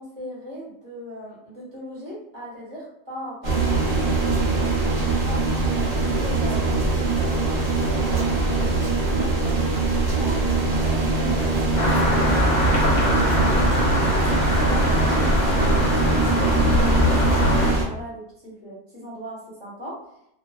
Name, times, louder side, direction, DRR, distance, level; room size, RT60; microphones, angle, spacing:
voice 1, 0.0-4.1 4.8-7.1 7.5-10.4 10.8-14.2 14.6-20.0, equal, 20° right, -8 dB, 0.8 m, -39 dB
sound 1, 3.4-17.8, right 3 dB, 55° right, 0.5 m, -22 dB
sound 2, 7.2-15.0, right 1 dB, 85° right, 1.1 m, -41 dB
sound 3, 11.8-17.7, left 1 dB, 55° left, 0.8 m, -22 dB
2.4 x 2.3 x 2.3 m, 0.77 s
omnidirectional pair, 1.5 m